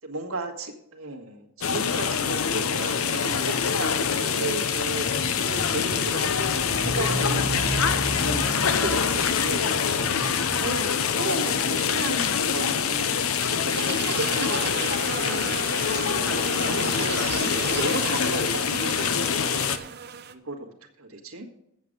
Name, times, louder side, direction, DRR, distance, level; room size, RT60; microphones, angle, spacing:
voice 1, 0.0-6.5 6.8-7.5 8.1-9.7 10.5-13.2 13.5-14.8 15.1-15.5 16.5-19.6 20.3-21.5, right 2 dB, 80° right, 2 dB, 1.6 m, -34 dB
sound 1, 1.6-19.8, left 7 dB, 85° left, 0.7 m, -25 dB
Motorcycle, 4.9-10.9, right 1 dB, 15° right, 0.8 m, -34 dB
sound 2, 13.7-20.3, right 6 dB, 50° right, 0.7 m, -34 dB
8.0 x 7.6 x 6.6 m, 0.77 s
head